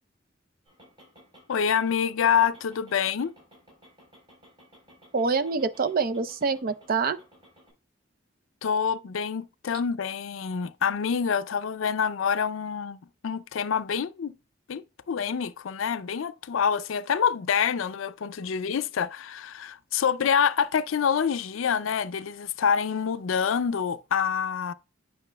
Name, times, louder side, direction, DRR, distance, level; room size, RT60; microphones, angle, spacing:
sound 1, 0.7-7.7, equal, 25° right, 4.1 m, -56 dB
voice 1, 1.5-3.3 8.6-14.3 14.7-24.7, left 7 dB, 75° left, 0.4 m, -26 dB
voice 2, 5.1-7.2, right 4 dB, 45° right, 0.5 m, -26 dB
8.9 x 5.5 x 2.2 m
head